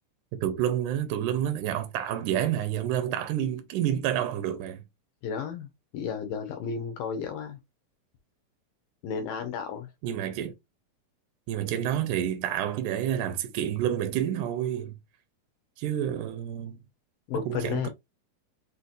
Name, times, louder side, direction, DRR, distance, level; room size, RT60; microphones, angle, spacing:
voice 1, 0.4-4.8 10.0-10.5 11.5-15.0 15.8-16.8 17.5-17.9, right 10 dB, 85° right, 1.8 m, -29 dB
voice 2, 5.2-7.6 9.0-9.9 17.3-17.9, left 6 dB, 75° left, 2.2 m, -33 dB
6.3 x 2.8 x 2.4 m
omnidirectional pair, 4.5 m